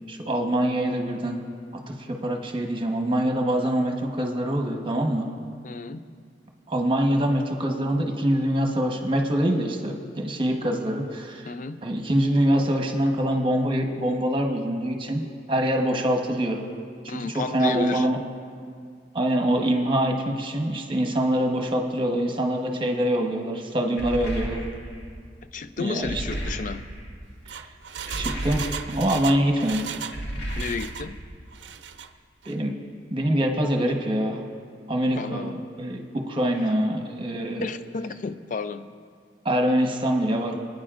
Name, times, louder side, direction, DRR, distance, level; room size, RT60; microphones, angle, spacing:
voice 1, 0.1-1.4 1.7-5.3 6.7-11.4 11.8-16.6 17.0-18.2 19.1-24.7 25.8-26.2 27.5-27.6 28.2-29.8 32.4-32.7 33.1-34.4 34.9-37.7 39.4-40.5, right 1 dB, 30° right, 1.1 m, -24 dB
voice 2, 5.6-6.0 11.5-11.8 17.1-18.1 25.5-26.8 30.6-31.2 35.2-35.6 37.6-38.9, left 4 dB, 45° left, 0.4 m, -32 dB
sound 1, 24.0-25.1 26.0-27.1 28.1-29.2 30.1-31.2, right 1 dB, 65° left, 2.1 m, -33 dB
Engine, 27.2-30.2 30.5-31.1 31.5-32.1 32.4-32.5, right 7 dB, 75° right, 0.5 m, -36 dB
25.5 x 9.5 x 2.5 m
head